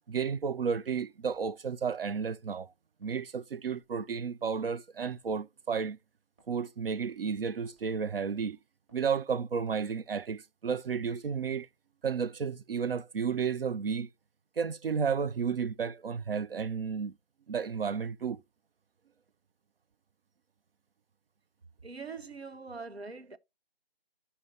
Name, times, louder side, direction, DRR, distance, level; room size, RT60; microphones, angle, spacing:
voice 1, 0.1-2.7 3.0-6.0 6.5-8.6 8.9-11.7 12.0-14.1 14.6-17.1 17.5-18.4, right 6 dB, 65° right, 0.5 m, -32 dB
Walk footsteps, 1.3-1.5 1.9-2.0 2.5-2.6 3.0-3.3 3.7-3.9 4.4-4.5 5.1-5.3 5.7-5.9 6.4-6.5 7.0-7.2 7.6-7.9 8.3-8.4 8.9-9.1 9.5-9.7 10.1-10.3, right 2 dB, 15° right, 3.2 m, -66 dB
voice 2, 21.8-23.4, right 4 dB, 85° right, 1.1 m, -43 dB
14.0 x 5.5 x 2.8 m
figure-of-eight pair, 160°, 30 cm